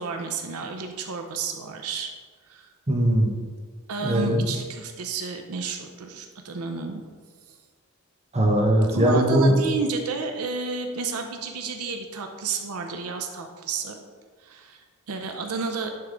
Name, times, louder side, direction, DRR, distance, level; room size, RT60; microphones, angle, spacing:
voice 1, 0.0-2.1 2.5-2.7 3.9-7.0 8.9-14.0 14.4-14.8 15.1-15.9, right 5 dB, 85° right, 5 dB, 0.6 m, -31 dB
voice 2, 2.9-3.3 4.0-4.4 8.3-9.5, equal, 30° right, 0 dB, 1.0 m, -20 dB
9.5 x 3.6 x 3.8 m, 1.6 s
head